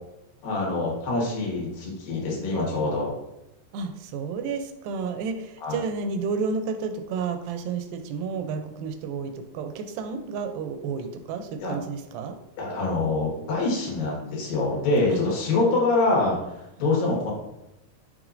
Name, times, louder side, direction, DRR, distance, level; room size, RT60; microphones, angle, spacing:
voice 1, 0.4-3.1 5.6-5.8 11.6-11.8 12.6-16.4 16.8-17.3, left 2 dB, 75° left, -3 dB, 3.5 m, -25 dB
voice 2, 3.7-12.4 15.1-15.2 17.0-17.3, right 5 dB, 90° right, 7 dB, 2.4 m, -31 dB
6.5 x 6.1 x 2.6 m, 0.89 s
omnidirectional pair, 4.1 m